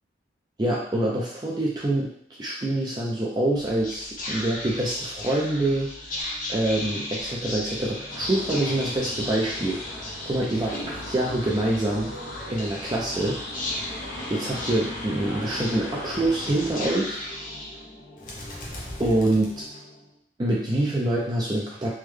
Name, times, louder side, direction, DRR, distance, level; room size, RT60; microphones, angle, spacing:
voice 1, 0.6-2.1 2.4-9.8 10.2-12.1 12.5-13.4 14.3-17.2 19.0-19.5 20.4-21.9, right 1 dB, 20° right, -5 dB, 0.4 m, -25 dB
Whispering, 3.5-20.1, left 1 dB, 45° left, 0.6 m, -36 dB
sound 1, 8.1-16.9, left 1 dB, 80° left, 1.0 m, -39 dB
3.4 x 2.1 x 3.1 m, 0.68 s
head